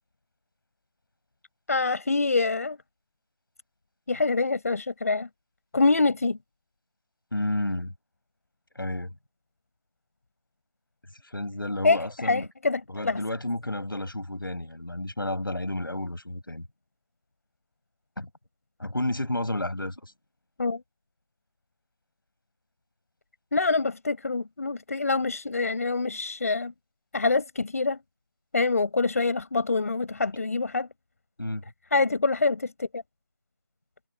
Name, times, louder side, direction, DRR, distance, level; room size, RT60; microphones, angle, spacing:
voice 1, 1.7-2.8 4.1-5.3 5.7-6.4 11.8-13.2 20.6-20.8 23.5-26.7 27.1-28.0 28.5-30.9 31.9-33.0, left 3 dB, 45° left, 5.5 m, -25 dB
voice 2, 7.3-7.9 8.8-9.1 11.2-12.5 12.9-16.7 18.2-18.3 18.8-20.1 31.4-31.6, left 1 dB, 85° left, 7.0 m, -31 dB
figure-of-eight pair, 170°, 11 cm